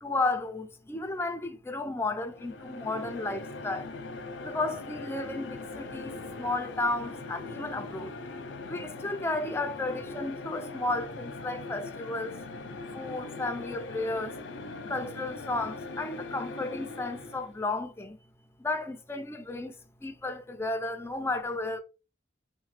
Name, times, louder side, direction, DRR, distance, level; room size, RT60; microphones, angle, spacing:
voice 1, 0.0-3.9 4.4-8.1 8.7-12.4 12.9-14.4 14.9-18.2 18.6-19.7 20.0-21.8, left 2 dB, 15° left, 0.3 m, -33 dB
sound 1, 2.3-17.6, left 3 dB, 85° left, 0.4 m, -41 dB
2.9 x 2.1 x 3.1 m
head